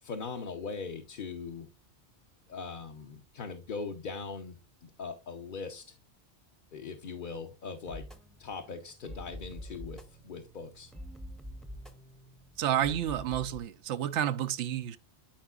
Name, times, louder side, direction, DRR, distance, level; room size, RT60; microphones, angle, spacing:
voice 1, 0.0-1.7 2.5-6.0 6.7-8.0 8.4-10.9, left 5 dB, 50° left, 0.8 m, -40 dB
sound 1, 7.9-13.6, equal, ahead, 0.6 m, -46 dB
voice 2, 12.6-15.0, right 10 dB, 90° right, 0.9 m, -30 dB
11.5 x 4.8 x 2.4 m
omnidirectional pair, 1.2 m